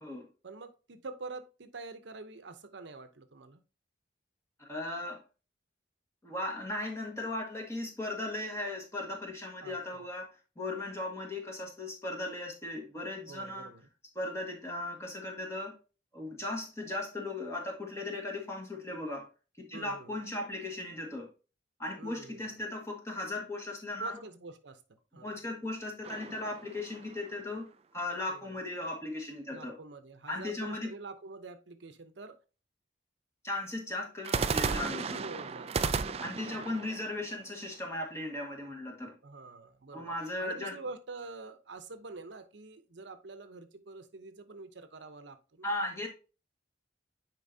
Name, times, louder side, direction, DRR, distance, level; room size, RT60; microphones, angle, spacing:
voice 1, 0.4-3.6 9.6-10.0 13.3-13.9 19.7-20.2 22.0-22.6 24.0-24.8 25.1-25.4 28.3-28.6 29.5-32.4 34.7-36.3 36.6-36.8 39.2-40.1 40.4-45.7, right 3 dB, 70° right, 0.8 m, -46 dB
voice 2, 4.6-5.2 6.2-10.3 10.5-13.7 14.1-15.8 16.1-19.3 19.6-21.3 21.8-24.2 25.2-29.8 30.3-30.9 33.4-35.1 36.2-39.2 39.9-40.7 45.6-46.1, left 2 dB, 15° left, 1.6 m, -37 dB
sound 1, 26.0-27.5 34.2-38.2, right 5 dB, 30° right, 0.3 m, -34 dB
9.6 x 4.5 x 2.7 m
head